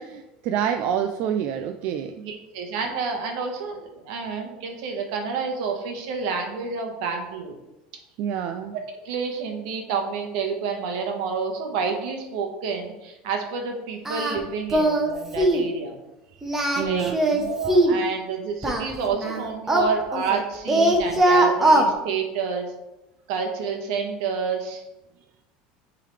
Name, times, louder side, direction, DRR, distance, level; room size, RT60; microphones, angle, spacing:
voice 1, 0.0-2.2 8.2-8.7 16.8-17.5, right 8 dB, 50° right, 6 dB, 0.4 m, -28 dB
voice 2, 2.2-7.5 8.7-16.0 16.8-17.0 17.4-22.7 23.3-24.8, right 5 dB, 75° right, 3 dB, 1.3 m, -29 dB
Singing, 14.0-14.4 14.7-15.1 15.4-15.7 16.4-18.0 18.6-20.4 20.7-21.9, right 1 dB, 10° right, 0.9 m, -20 dB
8.9 x 3.8 x 3.3 m, 0.97 s
supercardioid pair, 150°, 4 cm